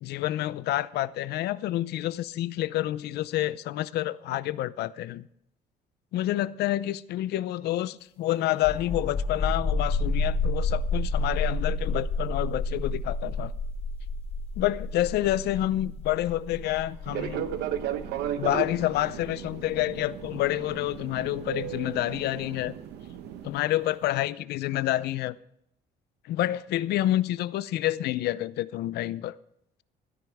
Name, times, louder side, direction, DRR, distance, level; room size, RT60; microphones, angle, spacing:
voice 1, 0.0-5.3 6.1-13.5 14.6-17.5 18.4-22.7 23.4-25.4 26.3-29.4, left 14 dB, 75° left, 0.6 m, -28 dB
sound 1, 8.6-21.9, left 2 dB, 40° left, 2.9 m, -30 dB
sound 2, 16.8-22.6, right 3 dB, 50° right, 3.4 m, -52 dB
Fixed-wing aircraft airplane, 17.1-23.5, right 10 dB, 80° right, 1.0 m, -35 dB
16.0 x 12.5 x 3.5 m
cardioid pair, 110°, 17 cm